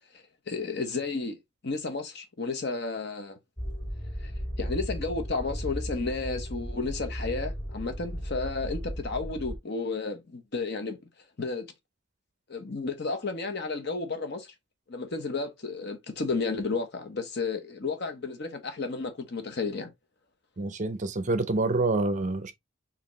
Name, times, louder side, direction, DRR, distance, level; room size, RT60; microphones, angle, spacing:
voice 1, 0.5-1.4 1.6-3.4 4.2-4.3 4.6-11.0 11.4-11.7 12.5-14.5 14.9-19.9, left 3 dB, 50° left, 0.9 m, -32 dB
sound 1, 3.6-9.6, equal, 25° left, 2.7 m, -35 dB
voice 2, 20.6-22.5, right 2 dB, 35° right, 0.5 m, -27 dB
4.9 x 2.8 x 3.0 m
head